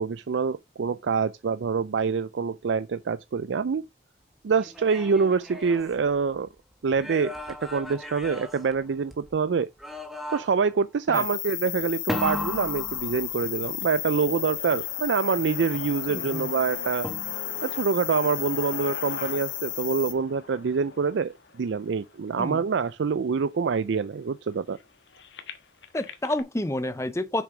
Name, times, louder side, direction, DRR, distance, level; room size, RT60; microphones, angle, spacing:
voice 1, 0.0-3.9 4.4-6.5 6.8-7.3 7.6-9.7 10.3-17.1 17.6-24.8, right 5 dB, 85° right, 0.4 m, -26 dB
sound 1, 4.6-6.5 6.9-9.3 9.8-10.8 12.1-13.7 17.0-17.7, equal, ahead, 1.3 m, -36 dB
sound 2, 11.1-20.1, left 14 dB, 45° left, 1.0 m, -33 dB
sound 3, 13.0-22.9 23.6-23.7 23.9-26.4, left 4 dB, 85° left, 1.3 m, -43 dB
voice 2, 16.1-16.5 22.4-22.6 25.9-27.4, left 1 dB, 15° left, 0.6 m, -29 dB
7.0 x 6.1 x 4.8 m
head